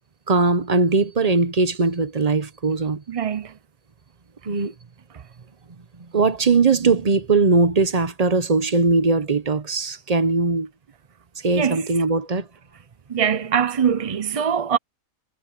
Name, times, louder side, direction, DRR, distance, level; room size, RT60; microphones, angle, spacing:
voice 1, 0.3-3.0 4.5-4.7 6.1-10.7 11.4-12.5, right 3 dB, 30° right, 0.9 m, -20 dB
voice 2, 3.1-3.5 11.6-11.8 13.1-14.8, right 7 dB, 60° right, 0.3 m, -22 dB
omnidirectional pair, 1.5 m